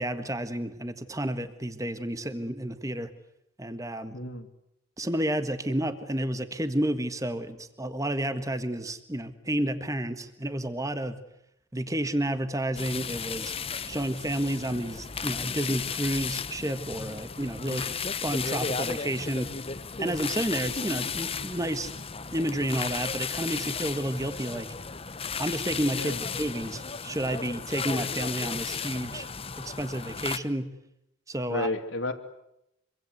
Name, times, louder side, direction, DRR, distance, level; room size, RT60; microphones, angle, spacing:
voice 1, 0.0-3.1 3.6-4.1 5.0-11.2 11.7-13.5 13.9-17.9 18.2-19.5 20.0-21.9 22.3-24.7 25.4-29.3 29.6-30.7 31.3-31.7, right 1 dB, 15° right, 10 dB, 1.6 m, -30 dB
voice 2, 4.1-4.5 17.6-17.9 25.9-26.2 31.5-32.1, left 2 dB, 60° left, 3 dB, 2.8 m, -32 dB
sound 1, 12.7-30.4, left 5 dB, 25° left, 1.0 m, -34 dB
26.0 x 24.5 x 8.1 m, 0.81 s
head